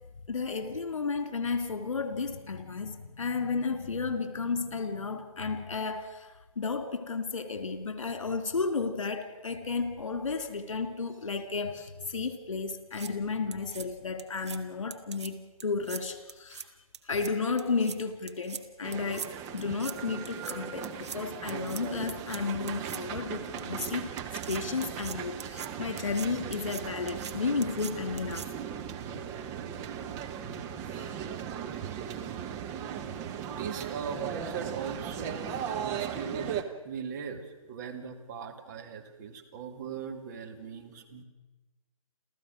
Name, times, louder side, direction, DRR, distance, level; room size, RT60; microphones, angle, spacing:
voice 1, 0.3-6.3 6.6-16.7 17.1-24.1 24.5-28.5 30.9-31.2, left 4 dB, 60° left, 8 dB, 2.8 m, -33 dB
sound 1, 12.7-13.1 13.5-13.8 14.2-14.6 14.9-15.3 15.6-16.0 16.3-16.6 16.9-17.3 17.6-18.0 18.3-18.6 18.9-19.3 19.6-19.9 20.2-20.5 20.8-21.2 21.5-21.8 22.1-22.4 22.7-23.0 23.6-23.9 24.2-25.7 26.0-26.3 26.5-26.8 27.1-27.3 27.6-27.9 28.2-28.5, right 7 dB, 50° right, 1.6 m, -41 dB
sound 2, 18.8-36.6, right 8 dB, 15° right, 1.0 m, -37 dB
voice 2, 33.4-41.2, right 6 dB, 30° right, 4 dB, 2.3 m, -39 dB
29.0 x 14.5 x 6.4 m, 1.1 s
figure-of-eight pair, 140°, 18 cm